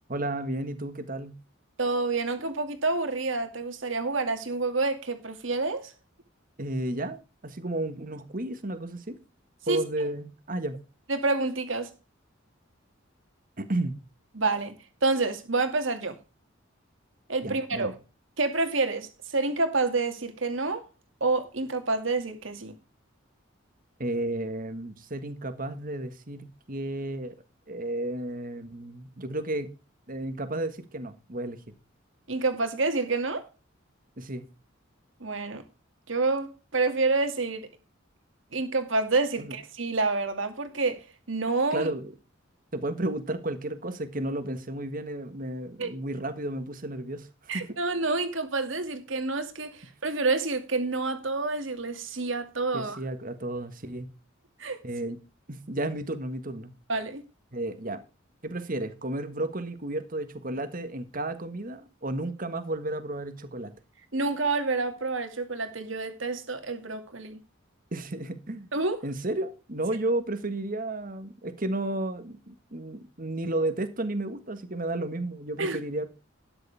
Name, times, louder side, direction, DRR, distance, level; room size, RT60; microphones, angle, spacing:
voice 1, 0.1-1.4 6.6-9.2 9.7-10.7 13.6-14.0 17.4-17.9 24.0-27.4 27.7-29.7 30.1-31.6 34.2-34.4 39.4-39.5 41.7-42.1 42.7-47.6 52.7-54.1 54.8-55.2 55.5-56.7 57.5-58.0 58.4-63.7 67.9-68.7 69.0-76.1, right 1 dB, 45° right, 1.7 m, -32 dB
voice 2, 1.8-5.9 9.6-9.8 11.1-11.9 14.3-14.7 15.0-16.2 17.3-17.9 18.4-20.9 21.2-22.8 32.3-33.5 35.2-35.6 36.1-37.7 38.5-41.9 45.8-45.9 47.5-53.0 54.6-54.8 56.9-57.2 64.1-67.4 68.7-69.0 75.6-75.8, right 3 dB, 70° right, 2.4 m, -28 dB
13.0 x 9.8 x 3.5 m
head